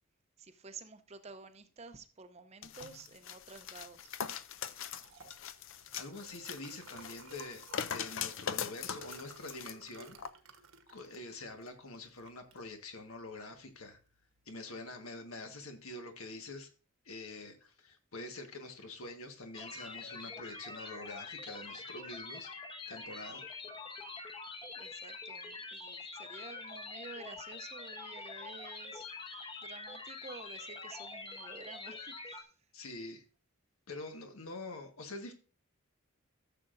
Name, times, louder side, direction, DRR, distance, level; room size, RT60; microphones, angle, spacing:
voice 1, 0.4-4.1 4.7-4.8 24.7-29.1 29.6-32.5, right 4 dB, 30° right, 0.6 m, -51 dB
sound 1, 2.6-9.7 10.2-10.3, left 8 dB, 65° left, 0.5 m, -41 dB
Liquid, 4.3-14.4, right 4 dB, 75° right, 1.1 m, -57 dB
voice 2, 5.9-10.2 10.9-14.0 14.4-16.7 17.0-22.5 22.9-23.4 32.7-33.2 33.9-35.3, left 2 dB, 80° left, 1.5 m, -46 dB
sound 2, 19.5-32.4, left 3 dB, 25° left, 0.9 m, -45 dB
13.5 x 6.9 x 2.6 m
head